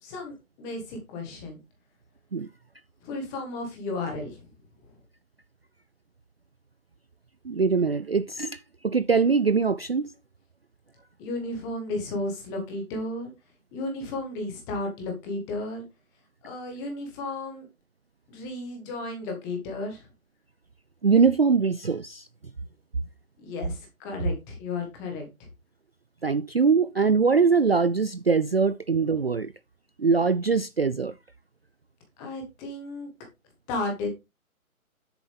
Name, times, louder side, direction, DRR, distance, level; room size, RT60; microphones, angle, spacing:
voice 1, 0.0-1.6 3.0-4.4 11.2-13.3 13.7-15.8 16.4-17.7 18.3-20.1 23.4-25.2 32.2-33.1 33.7-34.1, left 2 dB, 5° left, 1.4 m, -33 dB
voice 2, 7.4-10.1 21.0-22.3 26.2-29.5 30.0-31.1, right 5 dB, 45° right, 0.4 m, -22 dB
10.0 x 8.2 x 3.4 m
hypercardioid pair, 165°, 43 cm